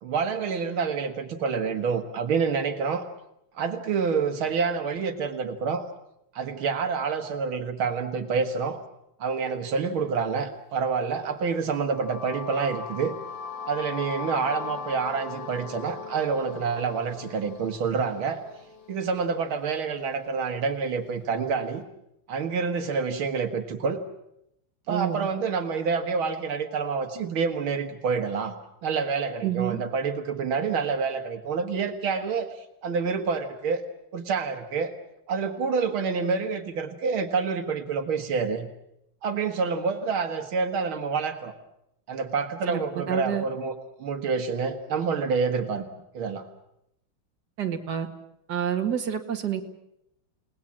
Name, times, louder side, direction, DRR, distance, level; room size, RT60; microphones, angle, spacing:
voice 1, 0.0-3.1 3.6-5.8 6.3-8.8 9.2-13.1 13.7-18.4 18.9-21.8 22.3-24.0 24.9-28.6 28.8-33.8 34.1-34.9 35.3-38.7 39.2-41.5 42.1-43.7 44.0-45.8 46.1-46.5, right 5 dB, 85° right, 6 dB, 2.4 m, -27 dB
sound 1, 11.7-19.6, left 6 dB, 65° left, 3.7 m, -39 dB
voice 2, 24.9-25.3 29.4-29.8 42.7-43.4 47.6-48.1 48.5-49.6, right 9 dB, 55° right, 4 dB, 2.4 m, -28 dB
29.5 x 19.0 x 7.5 m, 0.80 s
omnidirectional pair, 2.2 m